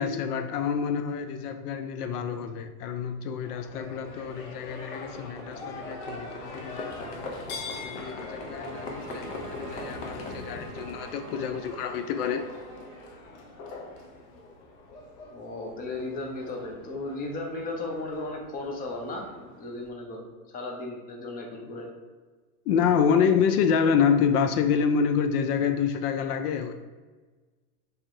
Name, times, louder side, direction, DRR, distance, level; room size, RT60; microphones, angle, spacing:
voice 1, 0.0-7.2 7.8-12.5 22.7-26.7, left 7 dB, 70° left, 8 dB, 0.5 m, -27 dB
Livestock farm animals working animals, 3.4-19.9, left 2 dB, 50° left, 1.0 m, -41 dB
sound 1, 8.1-13.0, right 3 dB, 15° right, 0.4 m, -45 dB
voice 2, 15.3-20.2 20.5-21.9, left 2 dB, 20° left, 1 dB, 0.7 m, -35 dB
3.6 x 3.2 x 4.7 m, 1.4 s
supercardioid pair, 135°, 47 cm